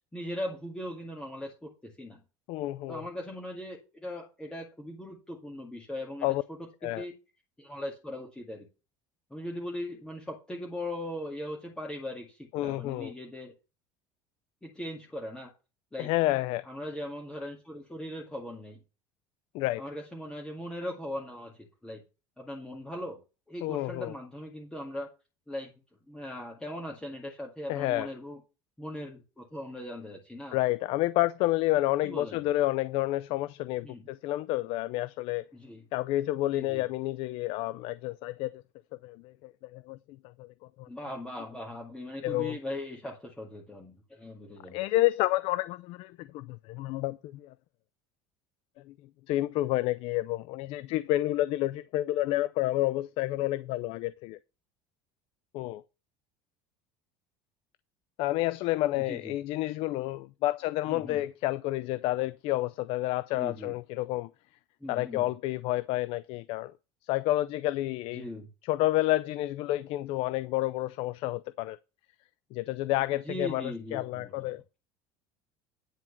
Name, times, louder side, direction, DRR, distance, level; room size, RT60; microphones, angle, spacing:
voice 1, 0.1-2.2 2.9-6.3 6.8-7.1 7.6-8.7 9.3-13.5 14.6-15.5 15.9-16.1 16.7-18.8 19.8-22.0 22.4-23.2 23.5-25.1 25.5-25.7 26.1-28.4 28.8-30.6 32.0-32.4 33.8-34.0 35.5-35.8 36.5-36.9 40.9-44.8 59.1-59.3 60.9-61.2 63.3-63.7 64.8-65.3 68.1-68.5 73.3-74.5, left 1 dB, 5° left, 2.1 m, -39 dB
voice 2, 2.5-3.1 6.2-6.4 6.8-7.1 12.5-13.1 16.0-16.7 19.5-19.8 23.6-24.1 27.7-28.1 30.5-35.4 35.9-38.6 39.0-40.0 40.4-40.9 42.2-42.6 44.7-47.5 48.9-49.0 49.3-54.4 55.5-55.8 58.2-64.3 64.9-66.7 67.0-68.2 68.7-71.8 72.5-74.6, left 16 dB, 60° left, 0.5 m, -30 dB
10.0 x 4.5 x 7.2 m
cardioid pair, 135°, 11 cm